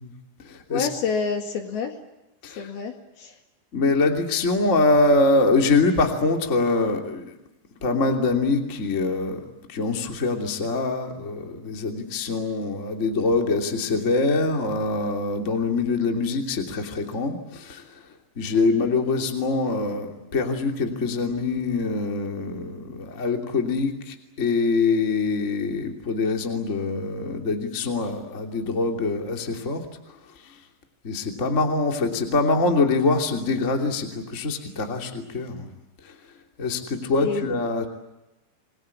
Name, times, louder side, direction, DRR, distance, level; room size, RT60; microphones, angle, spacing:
voice 1, 0.7-1.9 2.6-2.9 3.2-3.3 37.2-37.5, left 5 dB, 60° left, 4 dB, 3.5 m, -27 dB
voice 2, 3.7-7.3 7.8-9.4 9.7-17.8 18.4-29.8 31.0-35.7 36.6-37.9, left 3 dB, 20° left, 3 dB, 2.2 m, -24 dB
28.0 x 22.0 x 8.5 m, 1.0 s
omnidirectional pair, 5.5 m